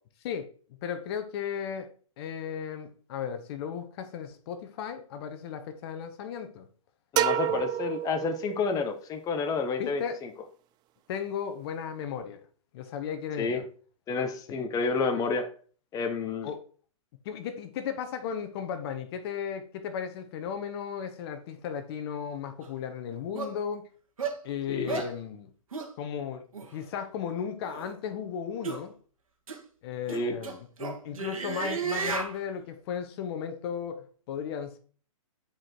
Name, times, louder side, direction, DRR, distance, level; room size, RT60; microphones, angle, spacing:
voice 1, 0.8-6.7 7.5-7.6 9.8-10.2 11.1-12.4 12.7-13.7 14.5-14.6 16.4-16.6 17.2-23.9 24.4-25.5 26.0-28.9 29.8-34.8, left 8 dB, 50° left, 1.3 m, -35 dB
voice 2, 7.1-10.3 13.4-13.6 14.1-15.5 15.9-16.5 24.7-25.0 30.1-30.3, left 4 dB, 20° left, 1.2 m, -30 dB
sound 1, 7.2-8.9, right 12 dB, 25° right, 0.5 m, -29 dB
sound 2, 22.6-22.7 23.4-23.5 24.2-24.4 24.9-25.1 25.7-25.9 26.5-26.7 27.6-27.9 28.6-28.8 29.5-29.6 30.1-32.3, right 5 dB, 85° right, 2.2 m, -33 dB
10.5 x 5.2 x 4.6 m
hypercardioid pair, 130°, 17 cm